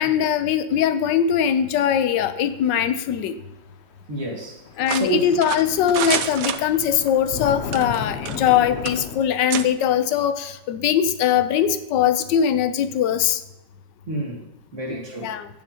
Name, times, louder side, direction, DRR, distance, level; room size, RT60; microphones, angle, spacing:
voice 1, 0.0-3.4 4.8-13.4 15.2-15.5, left 9 dB, 85° left, 11 dB, 1.3 m, -21 dB
sound 1, 3.1-3.2 4.4-4.5 4.6-9.2, left 6 dB, 65° left, 0.6 m, -34 dB
voice 2, 4.1-4.6 4.9-5.4 14.1-15.4, right 2 dB, 45° right, 0 dB, 2.0 m, -29 dB
sound 2, 4.9-7.1 7.6-8.6 8.8-9.0 9.5-9.7, right 9 dB, 70° right, 0.9 m, -28 dB
15.0 x 7.3 x 2.8 m, 0.94 s
omnidirectional pair, 1.9 m